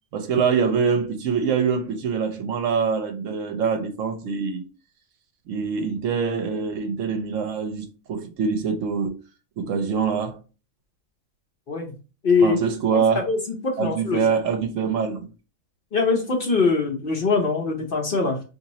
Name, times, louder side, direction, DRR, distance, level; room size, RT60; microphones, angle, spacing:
voice 1, 0.1-4.6 5.5-9.2 9.6-10.4 12.4-13.2 13.8-15.3, right 6 dB, 70° right, 0.9 m, -24 dB
voice 2, 12.2-12.6 12.9-13.4 13.6-14.2 15.9-18.4, left 4 dB, 50° left, 0.8 m, -22 dB
2.8 x 2.6 x 4.0 m
omnidirectional pair, 1.5 m